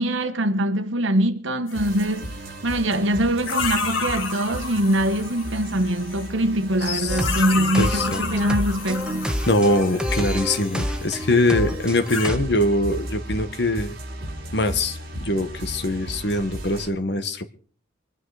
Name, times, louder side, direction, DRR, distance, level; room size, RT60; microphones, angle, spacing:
voice 1, 0.0-2.3 2.6-9.3, right 1 dB, 80° right, 1.4 m, -23 dB
sound 1, 1.7-2.2 3.4-6.3 7.1-11.0 11.8-12.3, left 5 dB, 90° left, 2.0 m, -31 dB
sound 2, 1.7-16.9, right 1 dB, 50° right, 4.3 m, -36 dB
voice 2, 6.9-7.2 7.8-8.2 9.5-13.9 14.5-17.5, left 1 dB, 60° left, 1.4 m, -23 dB
sound 3, 7.1-12.4, equal, 5° right, 1.3 m, -28 dB
24.5 x 9.3 x 4.9 m
head